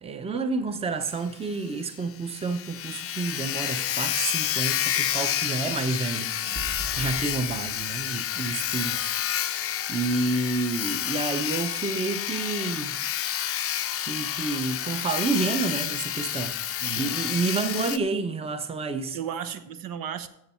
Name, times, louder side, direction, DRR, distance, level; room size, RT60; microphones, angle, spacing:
voice 1, 0.0-6.6 6.9-9.1 9.9-13.0 14.1-16.6 17.0-19.2, right 3 dB, 15° right, 0.7 m, -29 dB
Sawing, 1.1-1.2 1.5-1.6 2.0-2.1 2.2-18.0, left 10 dB, 40° left, 0.5 m, -29 dB
sound 1, 6.6-9.8 10.0-10.1, right 2 dB, 35° right, 1.0 m, -42 dB
voice 2, 16.8-17.2 19.1-20.3, right 8 dB, 75° right, 1.0 m, -35 dB
14.0 x 7.7 x 4.3 m
cardioid pair, 150°, 34 cm